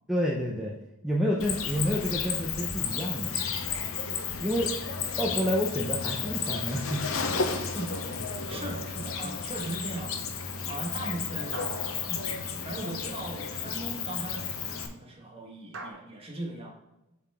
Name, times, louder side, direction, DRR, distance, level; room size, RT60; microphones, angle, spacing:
voice 1, 0.1-0.7 1.0-3.4 4.4-4.7 5.2-7.3 8.5-8.7 9.2-9.4, equal, 5° right, -4 dB, 0.7 m, -29 dB
Cricket, 1.4-14.9, left 6 dB, 75° left, 0.8 m, -33 dB
voice 2, 7.7-10.2 10.7-11.7 12.0-16.7, right 1 dB, 25° right, -1 dB, 1.5 m, -39 dB
sound 1, 7.9-9.1 11.5-13.2 15.7-15.9, right 2 dB, 65° right, 0.9 m, -44 dB
7.6 x 4.0 x 3.5 m, 0.93 s
head